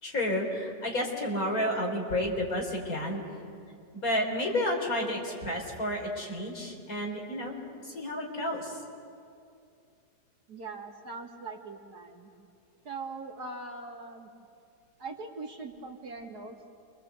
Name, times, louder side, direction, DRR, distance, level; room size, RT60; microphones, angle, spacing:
voice 1, 0.0-3.2 3.9-8.8, left 1 dB, 55° left, 0 dB, 4.4 m, -31 dB
voice 2, 10.5-12.3 12.8-14.3 15.0-16.7, right 3 dB, 65° right, 2 dB, 2.7 m, -41 dB
29.0 x 24.0 x 7.9 m, 2.4 s
omnidirectional pair, 1.9 m